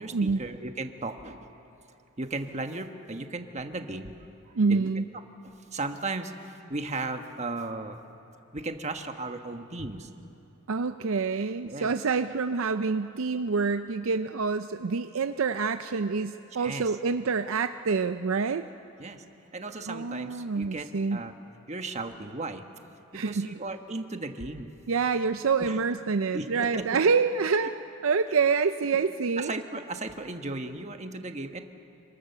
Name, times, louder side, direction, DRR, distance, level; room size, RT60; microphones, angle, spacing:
voice 1, 0.0-1.5 2.2-4.1 4.5-4.9 5.4-8.0 8.5-10.1 11.6-11.9 16.6-16.9 19.0-19.2 19.5-21.3 21.7-22.6 23.1-24.7 25.6-25.8 26.3-26.8 29.4-31.6, right 2 dB, 30° right, 6 dB, 1.2 m, -36 dB
voice 2, 4.6-5.0 10.7-18.6 19.9-21.2 23.1-23.5 24.9-27.8 28.0-29.5, right 5 dB, 65° right, 9 dB, 0.5 m, -27 dB
27.0 x 24.0 x 6.8 m, 2.9 s
head